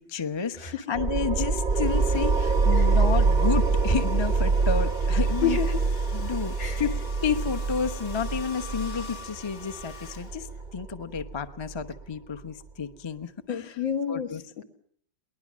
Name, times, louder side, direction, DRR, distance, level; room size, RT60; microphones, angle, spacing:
voice 1, 0.0-5.6 6.1-7.0 7.2-13.8 14.1-14.4, left 5 dB, 25° left, 9 dB, 0.6 m, -31 dB
voice 2, 0.5-0.8 2.7-3.0 5.4-5.8 6.6-6.8 13.5-14.6, left 8 dB, 80° left, 5 dB, 2.4 m, -30 dB
sound 1, 0.9-12.0, right 4 dB, 40° right, 0.6 m, -25 dB
Domestic sounds home sounds, 1.6-10.7, left 4 dB, 50° left, 1.9 m, -46 dB
22.0 x 19.5 x 7.4 m, 0.64 s
omnidirectional pair, 2.1 m